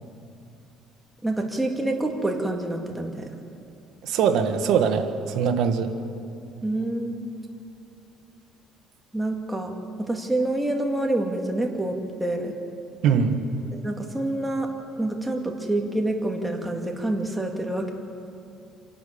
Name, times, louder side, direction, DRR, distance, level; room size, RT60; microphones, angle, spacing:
voice 1, 1.2-3.3 6.6-7.3 9.1-9.7 10.0-12.5 13.7-14.7 15.0-17.9, right 1 dB, 10° right, 1 dB, 2.2 m, -27 dB
voice 2, 4.0-5.9 13.0-13.4, right 7 dB, 70° right, 5 dB, 1.7 m, -22 dB
26.5 x 12.0 x 8.7 m, 2.5 s
cardioid pair, 130°, 0 cm